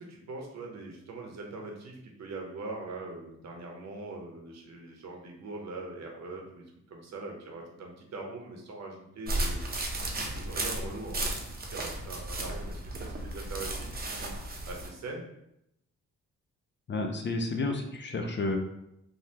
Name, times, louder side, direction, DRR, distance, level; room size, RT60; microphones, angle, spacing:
voice 1, 0.0-10.0 10.3-15.3, right 2 dB, 55° right, 0 dB, 0.8 m, -42 dB
sound 1, 9.3-14.9, right 1 dB, 30° right, 0.7 m, -34 dB
voice 2, 16.9-18.6, left 2 dB, 35° left, 4 dB, 0.5 m, -31 dB
3.3 x 2.3 x 2.8 m, 0.80 s
cardioid pair, 70°, 32 cm